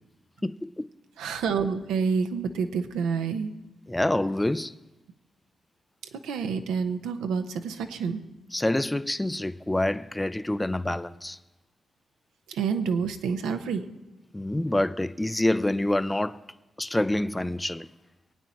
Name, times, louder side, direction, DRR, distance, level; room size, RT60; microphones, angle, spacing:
voice 1, 0.4-0.9 3.9-4.8 8.5-11.4 14.3-16.4 16.8-17.9, left 1 dB, 15° left, 0.4 m, -27 dB
voice 2, 1.2-3.5 6.1-8.2 12.5-13.8, right 5 dB, 85° right, 0.8 m, -28 dB
22.0 x 9.1 x 4.3 m
supercardioid pair, 50°, 0 cm